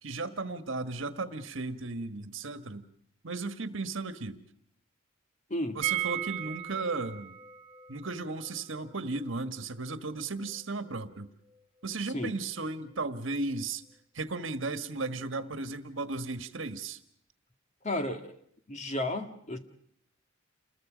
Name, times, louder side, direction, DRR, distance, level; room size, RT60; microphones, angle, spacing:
voice 1, 0.0-2.9 3.2-4.4 5.7-7.3 7.9-11.3 11.8-13.8 14.1-17.0, right 3 dB, 70° right, 10 dB, 1.5 m, -35 dB
voice 2, 5.5-5.8 12.1-12.3 17.8-18.4 18.7-19.6, left 1 dB, 35° left, 6 dB, 1.9 m, -33 dB
sound 1, 5.8-11.6 11.8-11.9 12.2-12.3, right 12 dB, 35° right, 1.2 m, -38 dB
29.0 x 21.5 x 5.1 m, 0.69 s
head